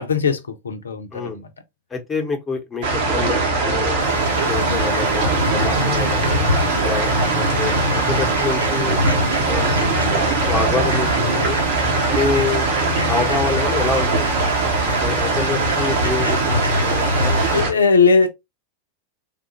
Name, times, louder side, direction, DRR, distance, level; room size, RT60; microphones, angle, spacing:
voice 1, 0.0-1.5 17.5-18.3, left 4 dB, 70° left, 0.6 m, -18 dB
voice 2, 1.9-4.1 4.5-6.4 6.8-9.0 9.4-11.6 12.1-12.7 13.0-14.3 14.8-17.4 17.7-17.9, left 4 dB, 15° left, 1.0 m, -27 dB
sound 1, 2.8-17.7, right 2 dB, 55° right, 1.1 m, -20 dB
Fowl, 4.0-17.6, equal, 75° right, 1.0 m, -28 dB
3.6 x 2.4 x 2.9 m
figure-of-eight pair, 90°, 0 cm